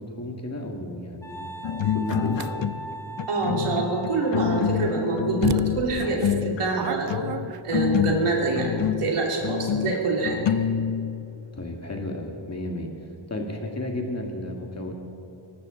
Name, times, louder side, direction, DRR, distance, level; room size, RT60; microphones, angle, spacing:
voice 1, 0.0-1.5 1.9-2.5 11.5-12.9 13.3-14.9, left 1 dB, 30° left, 2 dB, 2.1 m, -32 dB
Wind instrument woodwind instrument, 1.2-4.9, right 1 dB, 5° left, 1.4 m, -39 dB
sound 1, 1.6-2.9 3.2-11.3, left 9 dB, 60° left, 0.6 m, -27 dB
sound 2, 2.1-2.5 4.7-4.8 5.4-8.0, right 9 dB, 50° right, 0.6 m, -33 dB
voice 2, 3.3-7.2 7.6-10.4, right 3 dB, 90° right, -1 dB, 2.9 m, -26 dB
23.0 x 12.5 x 3.9 m, 2.8 s
wide cardioid pair, 90°, 50 cm